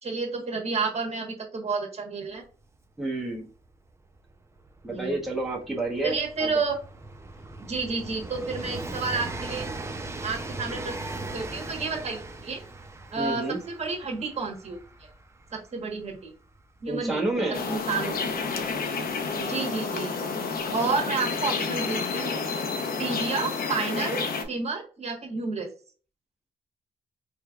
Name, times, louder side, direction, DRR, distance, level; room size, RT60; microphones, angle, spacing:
voice 1, 0.0-2.4 4.9-5.2 6.0-6.7 7.7-9.7 10.2-12.6 13.1-14.8 15.5-16.3 16.8-17.2 17.7-18.3 19.4-20.3 20.7-22.3 23.0-25.7, right 4 dB, 40° right, 1 dB, 1.3 m, -30 dB
Train, 2.4-2.5 2.7-19.3 20.3-20.4, right 2 dB, 15° right, 0.6 m, -40 dB
voice 2, 3.0-3.5 4.8-6.5 13.2-13.6 16.9-17.6, right 2 dB, ahead, -2 dB, 1.0 m, -29 dB
sound 1, 17.5-24.4, left 4 dB, 65° left, 0.8 m, -30 dB
4.3 x 3.3 x 2.4 m, 0.38 s
cardioid pair, 100°, 16 cm